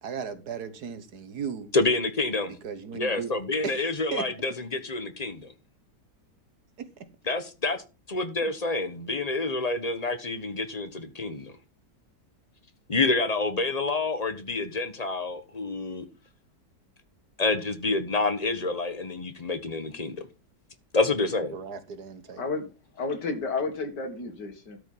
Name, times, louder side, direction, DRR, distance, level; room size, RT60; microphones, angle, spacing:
voice 1, 0.0-1.7 2.5-3.3 3.6-4.3 6.8-7.1 21.5-22.4, right 6 dB, 65° right, 1.7 m, -36 dB
voice 2, 1.7-2.5 2.9-5.5 7.3-7.8 8.1-11.5 12.9-16.0 17.4-20.3 20.9-21.5, left 3 dB, 25° left, 1.2 m, -28 dB
voice 3, 22.4-24.8, left 4 dB, 75° left, 2.4 m, -32 dB
13.0 x 5.5 x 5.5 m
omnidirectional pair, 1.8 m